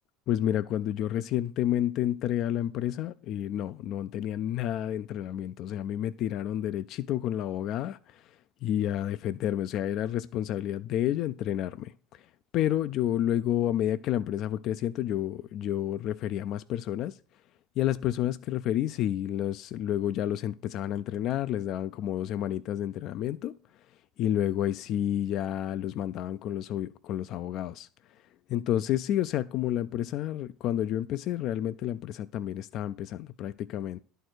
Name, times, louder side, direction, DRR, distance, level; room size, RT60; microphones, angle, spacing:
voice 1, 0.3-12.2 12.5-17.2 17.8-23.6 24.2-27.9 28.5-34.0, left 11 dB, 55° left, 0.4 m, -30 dB
11.0 x 4.5 x 6.5 m
hypercardioid pair, 75°, 0 cm